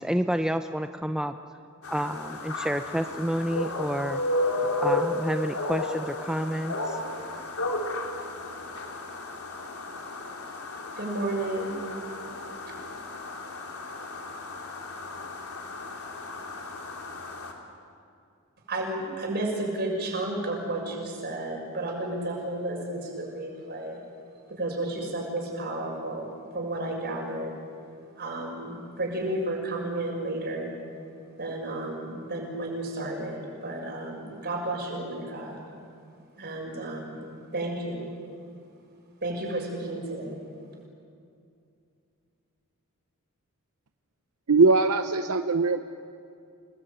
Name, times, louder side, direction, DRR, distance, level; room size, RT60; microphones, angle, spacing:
voice 1, 0.0-1.4 1.9-4.2 4.8-7.0, equal, 5° right, 7 dB, 0.6 m, -29 dB
sound 1, 1.8-17.5, left 2 dB, 75° left, 3.5 m, -33 dB
voice 2, 11.0-11.8 18.7-24.1 24.5-27.5 28.2-30.7 31.4-35.6 36.4-37.2 37.5-38.1 39.2-40.5, right 1 dB, 50° right, 0 dB, 6.7 m, -32 dB
voice 3, 44.5-45.8, right 3 dB, 80° right, 8 dB, 0.8 m, -21 dB
29.5 x 19.5 x 9.2 m, 2.4 s
head